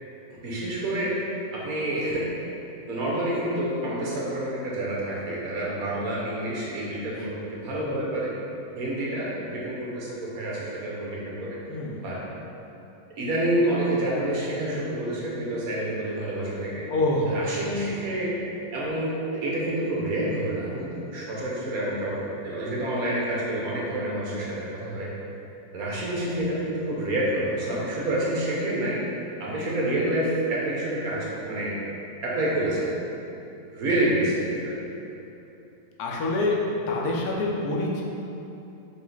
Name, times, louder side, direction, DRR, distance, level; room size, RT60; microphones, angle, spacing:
voice 1, 0.3-1.2 1.5-2.3 2.9-8.3 8.8-11.6 12.0-12.2 13.2-16.9 17.3-18.4 18.7-25.1 25.7-29.0 29.4-31.7 32.2-32.9 33.7-34.8, right 1 dB, 65° right, -5 dB, 1.3 m, -28 dB
voice 2, 11.7-12.1 16.9-17.4 36.0-36.6 36.9-38.0, left 2 dB, 75° left, -2 dB, 1.2 m, -26 dB
5.5 x 2.5 x 3.8 m, 2.9 s
omnidirectional pair, 1.7 m